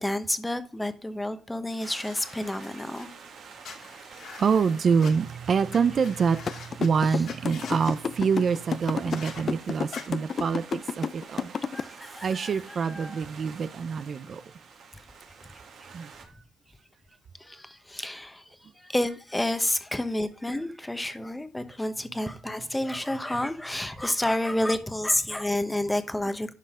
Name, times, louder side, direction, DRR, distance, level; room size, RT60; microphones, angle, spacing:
voice 1, 0.0-3.1 7.0-7.2 11.7-12.5 12.8-13.3 17.4-26.5, left 1 dB, 10° left, 1.0 m, -30 dB
sound 1, 1.7-3.1 3.6-5.1 5.7-5.8 6.0-6.9 7.2-8.0 9.1-9.4 9.9-10.0, left 6 dB, 70° left, 2.5 m, -44 dB
sound 2, 1.8-16.3, right 5 dB, 70° right, 2.4 m, -48 dB
voice 2, 4.4-11.5 12.2-14.4 15.9-16.1, right 6 dB, 50° right, 0.6 m, -26 dB
sound 3, 6.5-11.8, left 6 dB, 45° left, 0.5 m, -29 dB
11.5 x 5.5 x 3.7 m
cardioid pair, 90°, 0 cm